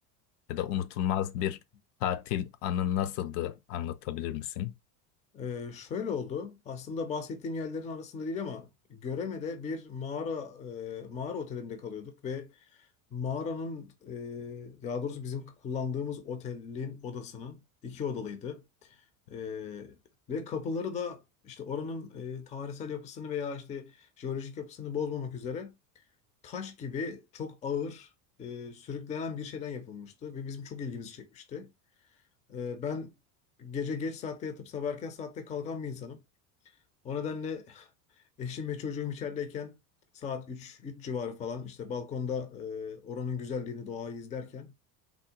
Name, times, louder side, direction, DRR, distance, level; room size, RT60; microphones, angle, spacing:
voice 1, 0.5-1.6 2.0-4.7, left 11 dB, 70° left, 0.5 m, -31 dB
voice 2, 5.3-12.9 13.1-19.0 19.3-20.0 20.3-25.7 26.4-28.1 28.4-31.7 32.5-33.1 33.6-36.2 37.0-37.9 38.4-39.8 40.1-44.7, left 6 dB, 15° left, 0.3 m, -36 dB
3.5 x 2.0 x 2.8 m
supercardioid pair, 115°, 47 cm